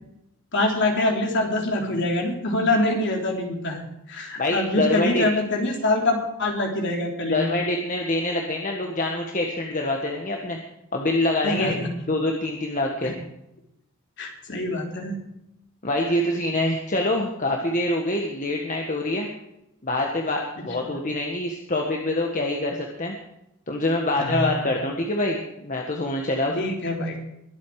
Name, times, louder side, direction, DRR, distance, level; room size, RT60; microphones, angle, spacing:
voice 1, 0.5-3.8 4.1-7.5 11.4-11.9 13.0-13.1 14.2-15.2 20.6-21.0 24.1-24.8 26.5-27.3, left 2 dB, 55° left, 1 dB, 3.4 m, -25 dB
voice 2, 4.4-5.2 7.2-10.6 10.9-11.8 12.1-13.1 15.8-19.3 19.8-23.2 23.7-26.5, left 1 dB, 35° left, 1 dB, 1.5 m, -25 dB
22.0 x 8.4 x 4.8 m, 0.84 s
head